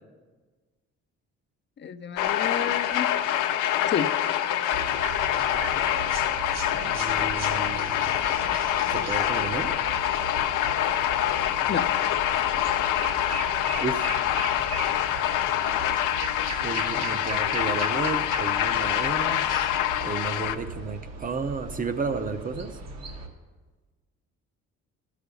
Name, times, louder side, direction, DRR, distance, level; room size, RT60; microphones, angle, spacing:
voice 1, 1.8-3.1 3.9-4.1 11.7-11.9, left 8 dB, 40° left, 11 dB, 0.5 m, -30 dB
sound 1, 2.2-20.6, left 11 dB, 85° left, 0.6 m, -26 dB
sound 2, 4.7-23.3, right 3 dB, 60° right, 1.4 m, -38 dB
voice 2, 6.9-8.3 8.9-9.7 13.8-14.1 16.6-19.5 20.0-22.8, right 4 dB, 30° right, 10 dB, 0.7 m, -32 dB
13.0 x 5.0 x 6.9 m, 1.4 s
cardioid pair, 90°, 30 cm